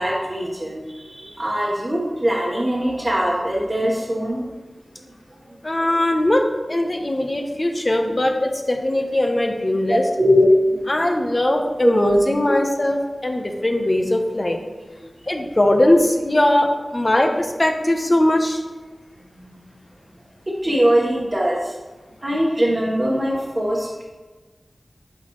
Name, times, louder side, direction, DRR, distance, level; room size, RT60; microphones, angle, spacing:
voice 1, 0.0-4.6 7.0-7.1 9.9-10.9 11.8-11.9 19.3-19.6 20.5-21.8 22.2-24.0, equal, 35° right, -5 dB, 1.3 m, -21 dB
voice 2, 5.6-10.0 10.9-14.6 15.3-18.6, left 1 dB, 40° left, 3 dB, 0.9 m, -20 dB
11.5 x 4.2 x 3.1 m, 1.2 s
wide cardioid pair, 45°, 0 cm